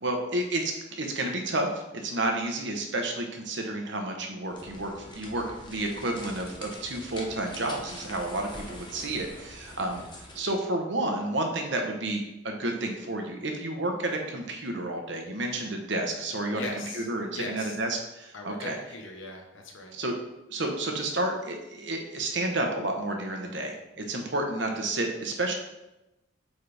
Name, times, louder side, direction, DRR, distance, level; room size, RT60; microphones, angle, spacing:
voice 1, 0.0-16.7 16.9-18.8 19.9-20.1 20.5-25.5, right 2 dB, 60° right, 3 dB, 1.1 m, -31 dB
sound 1, 4.5-10.5, left 1 dB, 25° left, 1.0 m, -44 dB
voice 2, 16.5-17.1 17.3-17.8 18.3-20.0, left 2 dB, 70° left, 2 dB, 1.2 m, -39 dB
8.1 x 4.2 x 3.5 m, 0.94 s
head